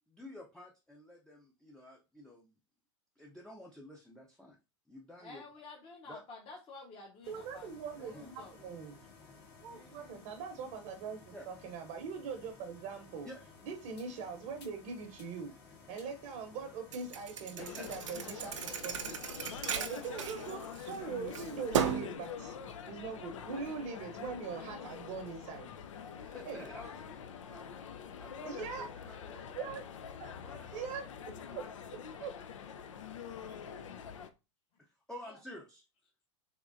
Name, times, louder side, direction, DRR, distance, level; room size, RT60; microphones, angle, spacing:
voice 1, 0.1-2.5 3.2-4.6 4.9-5.4 6.1-6.2 8.0-8.3 11.3-11.5 13.2-13.4 17.6-17.9 26.1-27.7 28.2-29.6 30.4-31.7 33.5-33.6 34.8-35.8, left 1 dB, 5° left, -1 dB, 0.6 m, -51 dB
voice 2, 5.2-8.5 9.7-10.4 35.3-35.4, left 3 dB, 40° left, -2 dB, 1.1 m, -52 dB
sound 1, 7.2-21.9, left 4 dB, 60° left, 2.0 m, -57 dB
voice 3, 7.3-9.1 9.6-13.3 13.6-15.5 15.9-19.2 19.5-22.6 22.9-25.7 26.4-26.7 28.4-28.9 29.5-29.8 30.2-30.3 30.7-31.1 31.5-31.6 32.2-32.3, right 5 dB, 55° right, 5 dB, 0.8 m, -42 dB
Thump thud, 16.9-21.0 21.3-22.2, right 8 dB, 85° right, 0.5 m, -35 dB
sound 2, 17.6-34.3, left 7 dB, 85° left, 0.5 m, -46 dB
3.5 x 3.2 x 2.5 m, 0.27 s
hypercardioid pair, 100°, 16 cm